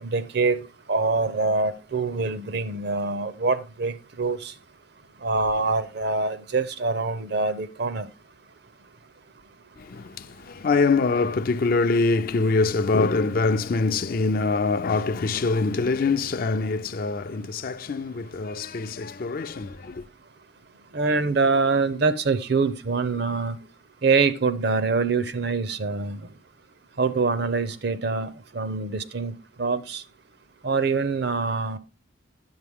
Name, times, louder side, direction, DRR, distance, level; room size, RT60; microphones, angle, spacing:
voice 1, 0.0-4.5 5.2-8.1 20.9-23.6 24.0-26.3 27.0-29.3 29.6-30.0 30.6-31.8, right 4 dB, 55° right, 0.6 m, -25 dB
voice 2, 9.8-20.0, left 3 dB, 50° left, 0.4 m, -24 dB
9.6 x 7.6 x 3.5 m
head